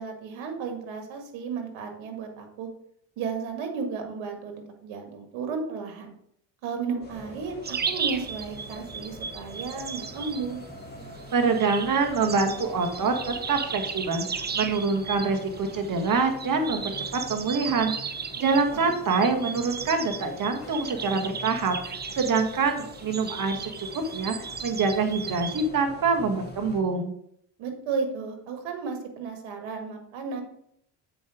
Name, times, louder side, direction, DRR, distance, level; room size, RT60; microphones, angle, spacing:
voice 1, 0.0-2.7 3.2-6.1 6.6-10.6 18.4-19.0 27.6-30.4, right 5 dB, 75° right, 5 dB, 2.0 m, -34 dB
sound 1, 7.0-26.8, left 2 dB, 20° left, 2.9 m, -44 dB
sound 2, 7.6-25.7, right 6 dB, 20° right, 0.6 m, -36 dB
voice 2, 11.3-14.3 14.5-16.9 17.3-17.9 18.4-24.3 24.6-27.1, right 4 dB, 40° right, 4 dB, 1.9 m, -25 dB
7.8 x 5.2 x 5.0 m, 0.69 s
supercardioid pair, 75°, 47 cm